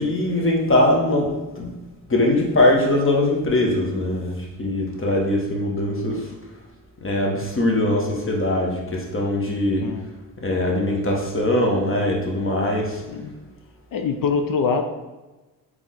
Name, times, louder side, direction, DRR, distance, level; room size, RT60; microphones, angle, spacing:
voice 1, 0.0-1.7 2.1-6.3 7.0-9.8 10.4-13.0, left 1 dB, 30° left, -1 dB, 1.2 m, -21 dB
voice 2, 13.9-14.8, left 5 dB, 55° left, 6 dB, 0.5 m, -23 dB
3.7 x 3.2 x 3.7 m, 1.1 s
supercardioid pair, 55°, 42 cm